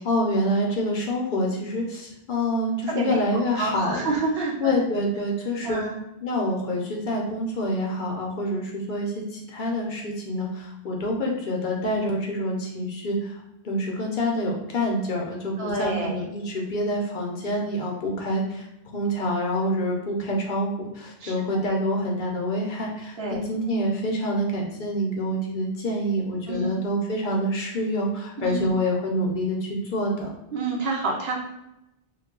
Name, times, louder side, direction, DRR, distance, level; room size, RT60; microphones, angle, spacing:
voice 1, 0.0-4.1 4.6-5.8 6.2-18.7 18.9-30.3, equal, 60° left, -1 dB, 0.6 m, -27 dB
voice 2, 2.9-3.2 3.6-4.7 5.6-6.0 15.6-16.2 21.2-21.6 23.2-23.4 26.5-26.7 28.4-28.7 30.5-31.3, right 3 dB, 75° right, -1 dB, 0.9 m, -28 dB
2.3 x 2.2 x 3.6 m, 0.89 s
omnidirectional pair, 1.1 m